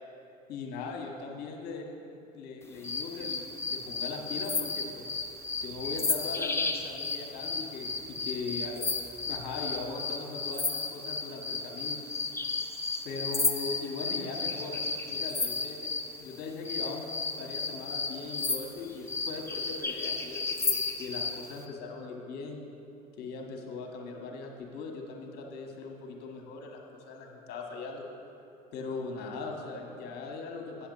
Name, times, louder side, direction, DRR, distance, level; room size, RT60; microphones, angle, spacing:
voice 1, 0.5-3.4 3.7-5.1 5.6-12.0 13.0-22.6 23.2-28.1 28.7-30.9, left 4 dB, 55° left, 1 dB, 1.4 m, -40 dB
sound 1, 2.8-16.1 16.6-21.4, left 4 dB, 15° left, 0.7 m, -33 dB
8.5 x 7.1 x 5.4 m, 2.7 s
hypercardioid pair, 65°, 20 cm